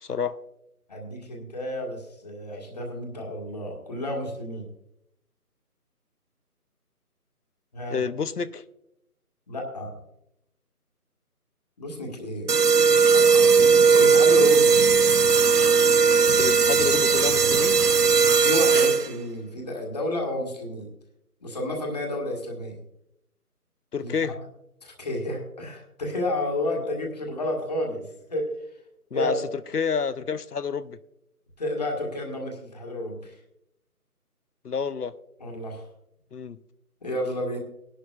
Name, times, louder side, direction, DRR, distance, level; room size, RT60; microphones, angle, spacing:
voice 1, 0.0-0.4 7.9-8.6 16.4-17.8 23.9-24.4 26.8-26.9 29.1-29.4 29.7-31.0 34.6-35.1 36.3-36.6, left 6 dB, 80° left, 0.7 m, -29 dB
voice 2, 0.9-4.7 7.7-8.0 9.5-10.0 11.8-12.5 13.1-13.5 13.9-14.8 18.3-20.9 21.4-22.8 24.0-24.4 24.8-28.5 29.1-29.4 31.6-33.4 35.4-35.9 37.0-37.6, left 1 dB, 25° left, 1.7 m, -31 dB
sound 1, 12.5-19.3, right 5 dB, 85° right, 0.8 m, -18 dB
18.5 x 11.5 x 2.4 m
figure-of-eight pair, 155°, 46 cm